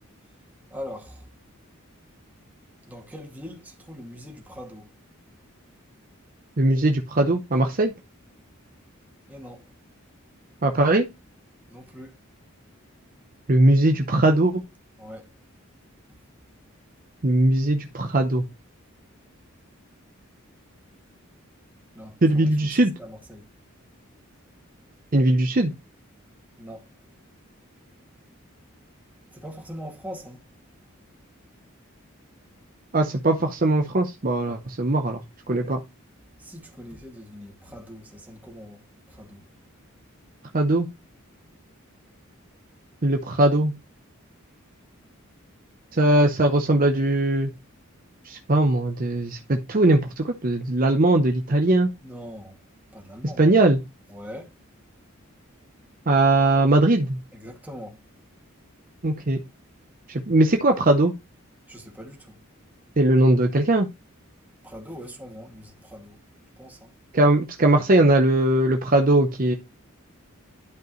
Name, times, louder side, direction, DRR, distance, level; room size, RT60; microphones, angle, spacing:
voice 1, 0.7-1.2 2.8-4.9 9.3-9.6 11.7-12.1 15.0-15.3 21.9-23.5 26.6-26.9 29.3-30.4 36.4-39.4 52.0-52.6 52.9-53.4 54.1-54.5 57.3-58.0 61.7-62.4 64.6-66.2 66.6-66.9, equal, 10° right, 2.2 m, -41 dB
voice 2, 6.6-7.9 10.6-11.1 13.5-14.6 17.2-18.4 22.2-22.9 25.1-25.7 32.9-35.2 35.5-35.8 40.5-40.9 43.0-43.7 45.9-47.5 48.2-51.9 53.4-53.8 56.1-57.2 59.0-59.4 60.1-61.1 63.0-63.9 67.1-69.5, right 1 dB, 40° right, 0.7 m, -20 dB
11.5 x 5.3 x 3.1 m
head